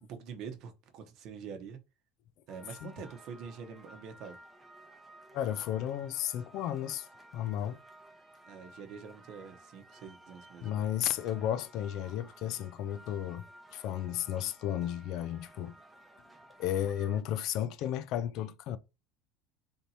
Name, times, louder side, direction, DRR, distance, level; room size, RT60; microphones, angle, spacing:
voice 1, 0.0-1.8 2.5-4.4 8.5-10.8, right 6 dB, 50° right, 0.8 m, -45 dB
sound 1, 2.5-17.2, right 1 dB, 10° right, 0.7 m, -55 dB
voice 2, 5.3-7.1 7.3-7.8 10.6-15.8 16.6-18.8, left 11 dB, 55° left, 0.4 m, -33 dB
3.5 x 2.8 x 4.0 m
supercardioid pair, 140°, 0 cm